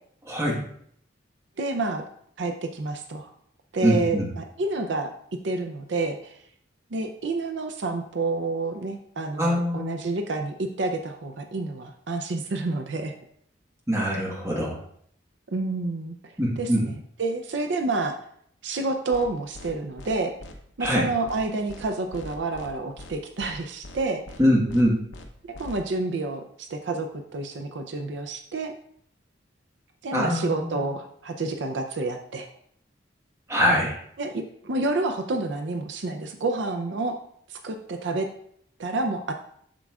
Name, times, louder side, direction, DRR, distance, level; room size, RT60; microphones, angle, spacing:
voice 1, 0.2-0.6 3.8-4.3 9.4-9.9 13.9-14.8 16.4-16.9 20.8-21.1 24.4-25.0 30.1-30.8 33.5-34.0, equal, 15° right, -3 dB, 1.3 m, -23 dB
voice 2, 1.6-2.0 2.4-3.3 3.7-5.1 5.4-6.4 6.9-13.1 15.5-18.2 18.6-20.3 20.8-24.2 25.6-27.1 27.3-28.7 30.0-32.5 34.2-37.1 37.5-38.3 38.8-39.3, right 3 dB, 70° right, 5 dB, 0.5 m, -29 dB
sound 1, 19.1-19.3 19.5-19.7 20.0-20.1 20.4-20.6 20.8-21.0 21.3-21.4 21.7-21.8 22.1-22.7 23.0-23.1 23.4-23.6 23.8-24.0 24.3-24.4 24.7-24.8 25.1-25.3 25.5-25.8, left 1 dB, 80° left, 0.8 m, -42 dB
7.5 x 6.1 x 2.4 m, 0.67 s
head